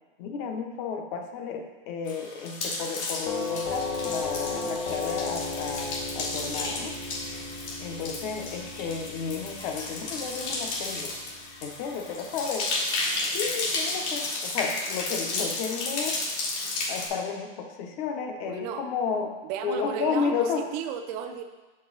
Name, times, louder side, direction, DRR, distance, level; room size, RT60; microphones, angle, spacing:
voice 1, 0.2-6.9 7.8-11.1 11.6-12.7 13.3-16.2 16.9-19.4 19.6-20.7, left 6 dB, 45° left, 4 dB, 0.9 m, -32 dB
sound 1, 2.1-17.1, left 3 dB, 75° left, 1.8 m, -33 dB
Doorbell, 3.3-12.1, left 3 dB, 20° left, 0.5 m, -36 dB
voice 2, 18.4-18.9 19.4-21.4, right 8 dB, 40° right, 6 dB, 0.6 m, -34 dB
6.7 x 5.4 x 4.0 m, 1.2 s
supercardioid pair, 155°, 33 cm